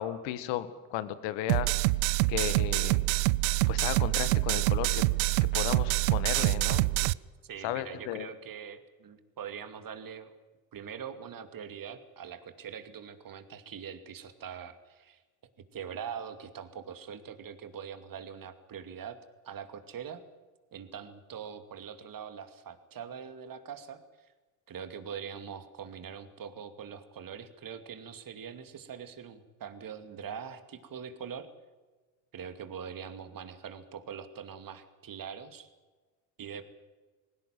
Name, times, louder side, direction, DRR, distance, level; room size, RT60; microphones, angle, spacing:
voice 1, 0.0-1.7 2.3-3.0 3.7-5.0 5.5-7.1 7.6-8.3, left 12 dB, 75° left, 13 dB, 1.7 m, -34 dB
sound 1, 1.5-7.1, right 21 dB, 90° right, 0.6 m, -26 dB
voice 2, 7.4-10.3 10.7-15.2 15.6-19.2 19.4-20.2 20.7-24.3 24.7-31.5 32.3-35.7 36.4-36.6, right 7 dB, 50° right, 10 dB, 2.6 m, -43 dB
20.0 x 16.5 x 9.1 m, 1.3 s
supercardioid pair, 70°, 43 cm